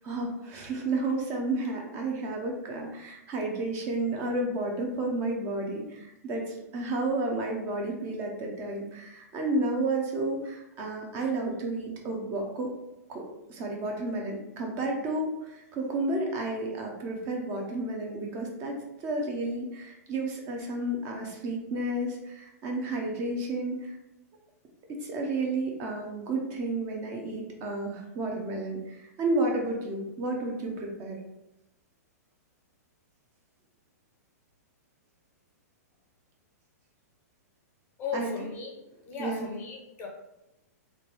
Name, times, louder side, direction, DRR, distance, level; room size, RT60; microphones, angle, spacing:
voice 1, 0.0-12.7 13.1-18.8 19.0-24.0 25.0-31.2 38.1-38.3 39.2-39.5, right 2 dB, 30° right, 1 dB, 0.7 m, -31 dB
voice 2, 38.0-38.8 39.1-40.1, left 5 dB, 20° left, -1 dB, 0.6 m, -36 dB
3.2 x 2.5 x 3.3 m, 0.91 s
hypercardioid pair, 145°, 9 cm